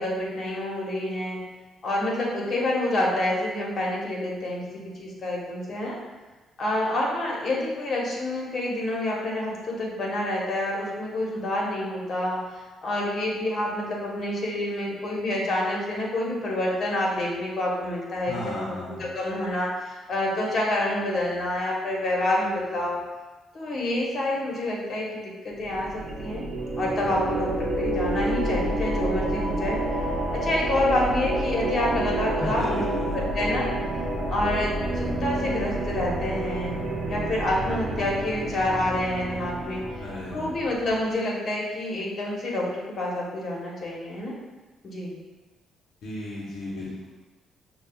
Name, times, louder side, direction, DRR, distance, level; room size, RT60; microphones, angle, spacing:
voice 1, 0.0-1.4 1.8-5.9 6.6-18.5 19.0-23.0 23.5-26.4 26.8-29.8 30.3-32.8 33.3-33.7 34.3-36.8 37.1-40.0 40.3-44.3 44.8-45.1, left 1 dB, 50° left, -3 dB, 1.1 m, -28 dB
voice 2, 18.3-19.0 32.4-33.2 40.0-40.5 46.0-47.1, left 1 dB, 70° left, -6 dB, 0.8 m, -34 dB
sound 1, 25.6-41.0, right 1 dB, 70° right, 0.6 m, -29 dB
6.5 x 2.4 x 2.3 m, 1.2 s
cardioid pair, 90°, 0 cm